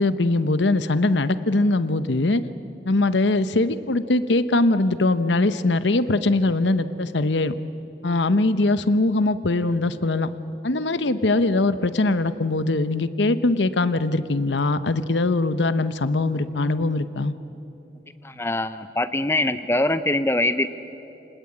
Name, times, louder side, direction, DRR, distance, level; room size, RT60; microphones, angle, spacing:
voice 1, 0.0-2.4 2.8-7.5 8.0-10.3 10.6-17.3, left 2 dB, 90° left, 12 dB, 0.9 m, -21 dB
voice 2, 18.2-20.7, left 1 dB, 15° left, 11 dB, 0.6 m, -23 dB
29.0 x 19.5 x 8.6 m, 2.9 s
head